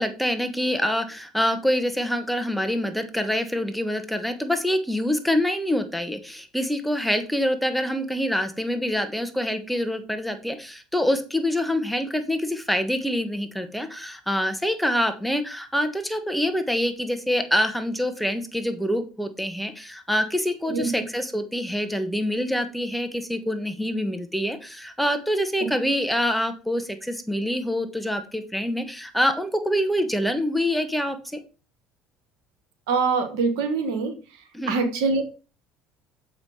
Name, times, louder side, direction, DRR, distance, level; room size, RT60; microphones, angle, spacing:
voice 1, 0.0-31.4 34.5-34.7, equal, ahead, 7 dB, 1.5 m, -26 dB
voice 2, 32.9-34.1 34.7-35.2, right 4 dB, 80° right, 8 dB, 1.6 m, -23 dB
7.3 x 5.6 x 4.9 m, 0.34 s
hypercardioid pair, 75°, 3 cm